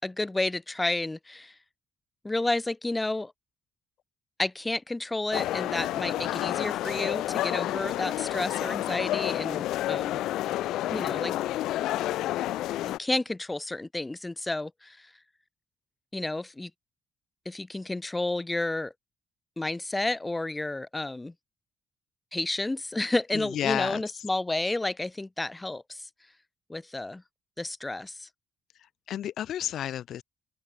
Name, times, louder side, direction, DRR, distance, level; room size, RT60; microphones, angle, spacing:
voice 1, 0.0-1.5 2.2-3.3 4.4-10.2 10.9-11.3 12.8-15.1 16.1-16.7 17.4-18.9 19.6-21.3 22.3-26.1 26.7-27.2 27.6-28.3, left 2 dB, 15° left, 4.8 m, -31 dB
sound 1, 5.3-13.0, left 14 dB, 85° left, 0.5 m, -30 dB
voice 2, 23.3-24.0 29.1-30.2, left 11 dB, 70° left, 2.7 m, -31 dB
open air
cardioid pair, 90°, 0 cm